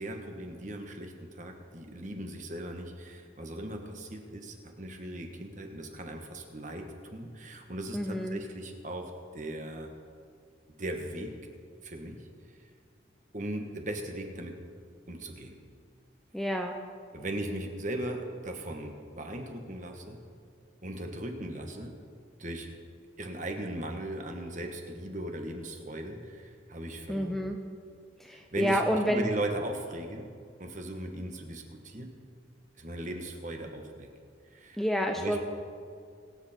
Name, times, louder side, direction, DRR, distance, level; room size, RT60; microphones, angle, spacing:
voice 1, 0.0-9.9 10.7-11.3 11.8-12.7 13.3-14.6 15.1-15.6 17.1-20.2 20.8-21.9 22.4-22.7 23.2-27.5 28.3-30.3 30.6-32.1 32.7-34.1 34.5-34.8 35.1-35.4, right 1 dB, 40° right, 4 dB, 1.5 m, -38 dB
voice 2, 7.9-8.4 16.3-16.7 27.1-27.6 28.2-29.3 34.8-35.5, equal, ahead, 2 dB, 0.7 m, -29 dB
23.5 x 8.0 x 4.4 m, 2.2 s
head